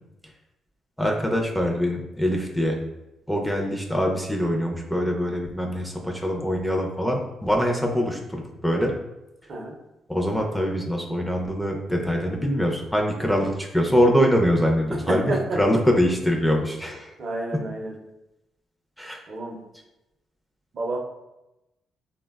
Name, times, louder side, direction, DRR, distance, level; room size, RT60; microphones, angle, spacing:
voice 1, 1.0-2.8 3.3-9.0 10.1-17.1 17.5-17.6 19.0-19.2, equal, 5° left, 0 dB, 0.4 m, -23 dB
voice 2, 14.9-15.6 17.2-17.9 19.3-19.6 20.7-21.0, right 2 dB, 50° right, 0 dB, 0.5 m, -29 dB
3.2 x 2.1 x 2.2 m, 0.94 s
cardioid pair, 90°, 0 cm